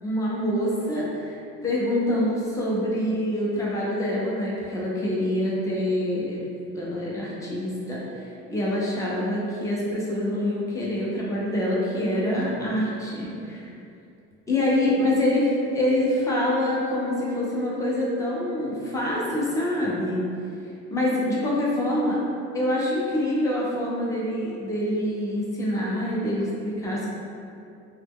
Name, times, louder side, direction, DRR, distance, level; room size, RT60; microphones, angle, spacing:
voice 1, 0.0-6.4 6.7-13.7 14.5-20.2 20.9-22.2 22.5-27.1, left 1 dB, 10° left, -5 dB, 0.3 m, -26 dB
2.9 x 2.1 x 3.4 m, 2.6 s
cardioid pair, 170°, 31 cm